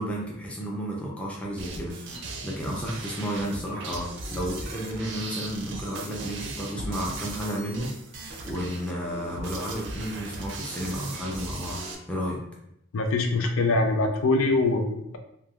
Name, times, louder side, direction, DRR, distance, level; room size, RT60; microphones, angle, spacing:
voice 1, 0.0-7.9 8.4-11.8 12.1-12.4, equal, 5° left, -3 dB, 0.5 m, -32 dB
sound 1, 1.6-11.9, right 2 dB, 60° right, 0.5 m, -38 dB
voice 2, 12.9-15.2, left 2 dB, 85° left, 5 dB, 0.4 m, -23 dB
3.2 x 2.3 x 2.3 m, 0.77 s
head